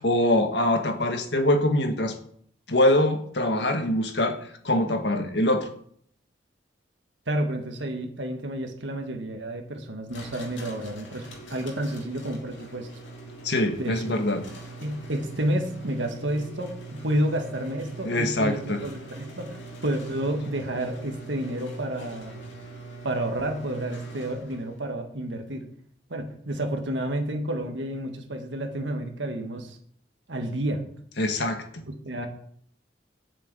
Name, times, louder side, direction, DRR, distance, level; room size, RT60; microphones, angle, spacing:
voice 1, 0.0-2.1 2.7-5.7 13.4-14.4 18.0-18.8 31.2-31.8, left 1 dB, 65° left, 6 dB, 1.5 m, -24 dB
voice 2, 7.3-12.9 13.8-14.1 14.8-22.4 23.0-25.7 26.1-29.8 30.3-30.8 32.0-32.3, right 1 dB, 80° right, 3 dB, 1.7 m, -30 dB
sound 1, 10.1-24.8, right 2 dB, 90° left, 2.4 m, -42 dB
7.7 x 6.8 x 8.3 m, 0.62 s
head